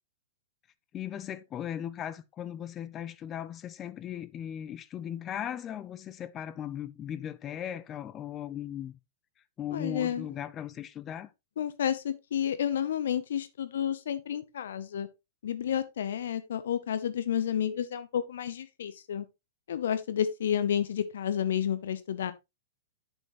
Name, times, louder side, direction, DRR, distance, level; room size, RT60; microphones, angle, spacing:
voice 1, 0.9-9.0 9.6-11.3, left 10 dB, 25° left, 0.6 m, -38 dB
voice 2, 9.7-10.3 11.6-15.1 15.4-19.3 19.7-22.3, left 9 dB, 70° left, 0.8 m, -30 dB
8.2 x 7.4 x 3.1 m
hypercardioid pair, 110°, 0 cm